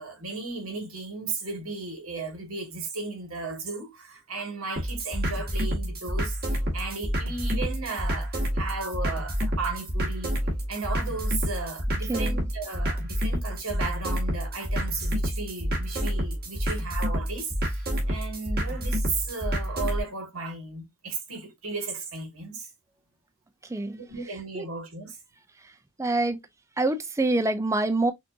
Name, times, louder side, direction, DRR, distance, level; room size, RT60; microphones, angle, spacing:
voice 1, 0.0-10.4 10.7-22.7 24.0-25.2, right 4 dB, 70° right, 1.9 m, -35 dB
sound 1, 4.8-20.0, equal, 45° right, 2.0 m, -29 dB
voice 2, 12.1-12.4 23.7-24.0 24.5-24.7 26.0-26.4 26.8-28.1, right 2 dB, 15° right, 0.4 m, -26 dB
6.0 x 2.6 x 2.6 m
head